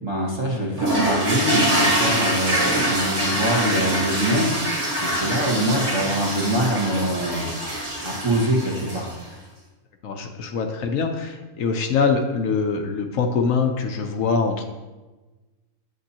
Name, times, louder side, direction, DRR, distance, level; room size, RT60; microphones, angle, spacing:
voice 1, 0.0-4.5 5.0-7.5 8.0-9.1, right 1 dB, 20° right, -4 dB, 1.1 m, -24 dB
sound 1, 0.8-9.2, right 1 dB, 60° right, 1.9 m, -24 dB
voice 2, 10.0-14.6, left 5 dB, 75° left, 4 dB, 1.1 m, -23 dB
8.1 x 6.9 x 2.9 m, 1.2 s
omnidirectional pair, 1.4 m